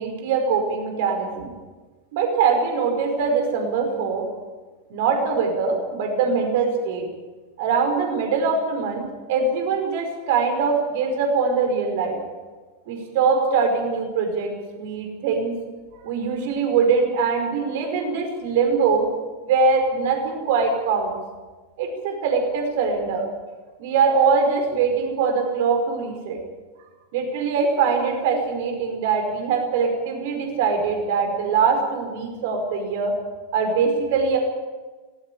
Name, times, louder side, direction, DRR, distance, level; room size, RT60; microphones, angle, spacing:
voice 1, 0.0-1.5 2.1-4.3 4.9-7.1 7.6-12.2 12.9-15.6 16.0-19.1 19.4-21.2 21.8-23.3 23.8-26.4 27.1-33.1 33.5-34.4, right 5 dB, 50° right, 4 dB, 5.1 m, -22 dB
18.5 x 18.5 x 8.7 m, 1.3 s
figure-of-eight pair, 90°, 0 cm